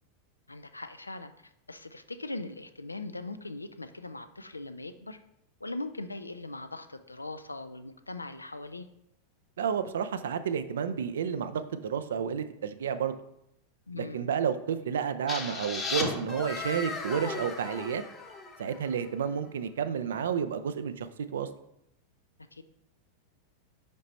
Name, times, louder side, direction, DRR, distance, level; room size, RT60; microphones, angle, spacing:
voice 1, 0.5-1.3 1.7-5.2 5.6-8.9 13.9-14.3 22.5-22.6, left 2 dB, 80° left, 9 dB, 0.4 m, -40 dB
voice 2, 9.6-13.2 13.9-18.0 18.6-21.5, right 7 dB, 65° right, 11 dB, 0.4 m, -31 dB
sound 1, 15.3-19.0, left 3 dB, 20° left, 0.9 m, -36 dB
5.2 x 5.0 x 4.2 m, 0.79 s
figure-of-eight pair, 90°, 0 cm